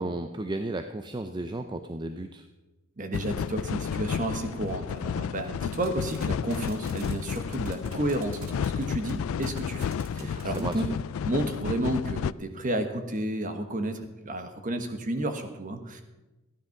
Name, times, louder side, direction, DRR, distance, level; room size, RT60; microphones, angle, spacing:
voice 1, 0.0-2.5 10.2-10.9, right 2 dB, 20° right, 7 dB, 0.5 m, -34 dB
voice 2, 3.0-10.9 11.2-16.0, right 1 dB, 40° right, 7 dB, 1.3 m, -31 dB
sound 1, 3.1-12.3, left 7 dB, 80° left, 0.3 m, -32 dB
sound 2, 5.6-6.2 6.5-8.8 9.1-9.2 9.4-10.8, right 6 dB, 85° right, 2.4 m, -47 dB
14.0 x 10.5 x 5.9 m, 1.1 s
head